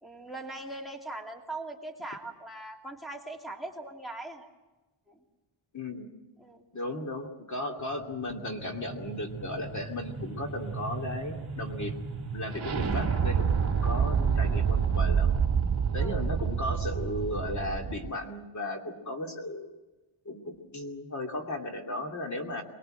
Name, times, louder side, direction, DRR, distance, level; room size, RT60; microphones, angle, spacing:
voice 1, 0.0-4.5 5.1-5.2 6.4-6.6 16.0-16.2, right 2 dB, ahead, 2 dB, 2.8 m, -40 dB
voice 2, 5.7-6.1 6.7-12.0 12.3-15.4 15.9-19.7 20.2-22.6, left 1 dB, 35° left, 3 dB, 2.6 m, -35 dB
sound 1, 7.9-18.1, right 6 dB, 30° right, 4.3 m, -29 dB
24.5 x 21.5 x 7.8 m, 1.1 s
wide cardioid pair, 165°, 49 cm